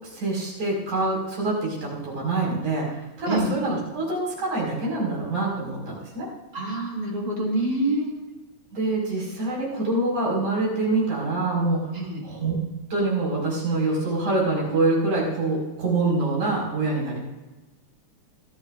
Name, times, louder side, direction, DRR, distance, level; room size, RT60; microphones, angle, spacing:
voice 1, 0.0-6.3 8.7-12.6 12.9-17.2, right 2 dB, 85° right, -4 dB, 6.9 m, -25 dB
voice 2, 6.5-8.1 11.9-12.2, right 1 dB, 35° right, -3 dB, 2.9 m, -26 dB
22.5 x 14.5 x 2.6 m, 1.1 s
omnidirectional pair, 3.4 m